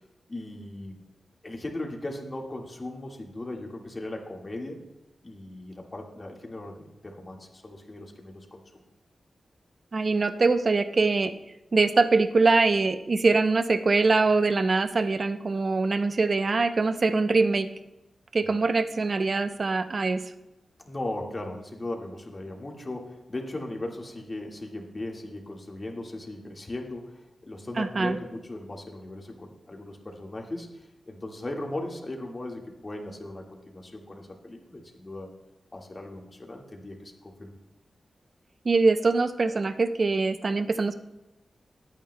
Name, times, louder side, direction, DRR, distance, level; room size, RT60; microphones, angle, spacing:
voice 1, 0.3-1.0 1.4-4.8 5.2-8.8 20.9-30.7 31.1-35.3 35.7-37.5, left 1 dB, 35° left, 1 dB, 1.7 m, -38 dB
voice 2, 9.9-11.3 11.7-17.7 18.3-20.2 27.8-28.1 38.6-40.9, right 3 dB, 50° right, 9 dB, 0.6 m, -23 dB
21.0 x 8.8 x 2.2 m, 0.96 s
wide cardioid pair, 85°, 0 cm